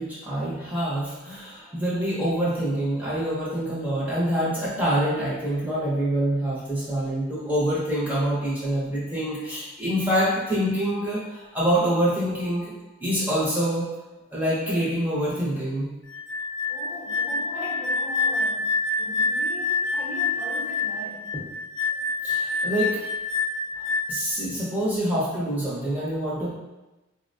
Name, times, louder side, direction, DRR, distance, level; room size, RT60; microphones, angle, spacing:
voice 1, 0.0-12.7 13.0-13.9 14.3-15.9 22.2-23.0 23.8-26.5, right 1 dB, 10° right, -8 dB, 0.6 m, -26 dB
sound 1, 16.1-24.3, left 3 dB, 60° left, 0.4 m, -27 dB
voice 2, 16.7-18.7 19.0-21.4, equal, 25° left, -6 dB, 0.8 m, -39 dB
3.8 x 2.1 x 2.6 m, 1.1 s
head